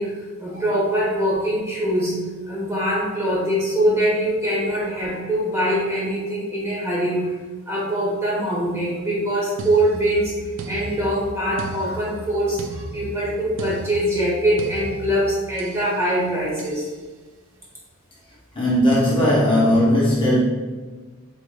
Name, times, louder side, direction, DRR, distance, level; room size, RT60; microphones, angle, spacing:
voice 1, 0.0-7.3 7.7-10.3 10.7-16.9, equal, 10° right, -6 dB, 1.0 m, -23 dB
sound 1, 9.6-15.9 16.6-16.9, right 2 dB, 55° right, 0.4 m, -36 dB
voice 2, 18.5-20.4, equal, 20° left, -7 dB, 0.9 m, -17 dB
4.7 x 3.6 x 2.2 m, 1.3 s
head